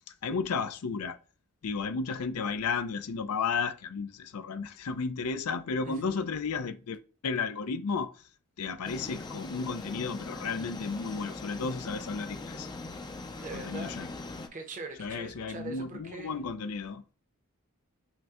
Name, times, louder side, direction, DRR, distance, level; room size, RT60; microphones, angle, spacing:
voice 1, 0.2-1.2 1.6-8.1 8.6-12.7 13.5-14.1 15.0-17.0, left 5 dB, 90° left, 0.5 m, -33 dB
voice 2, 5.8-6.2 13.4-14.0 14.5-16.4, right 3 dB, 35° right, 0.8 m, -42 dB
sound 1, 8.8-14.5, left 2 dB, 20° left, 0.4 m, -41 dB
5.6 x 2.2 x 2.8 m
head